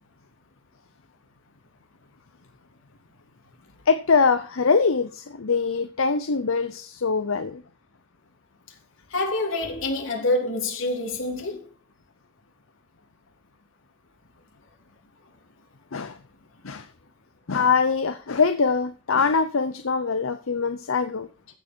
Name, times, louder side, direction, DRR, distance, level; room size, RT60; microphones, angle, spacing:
voice 1, 3.9-7.6 15.9-16.2 16.6-16.9 17.5-21.3, left 5 dB, 90° left, 0.8 m, -23 dB
voice 2, 9.1-11.7, left 2 dB, 75° left, 3.3 m, -26 dB
15.0 x 7.0 x 4.5 m
head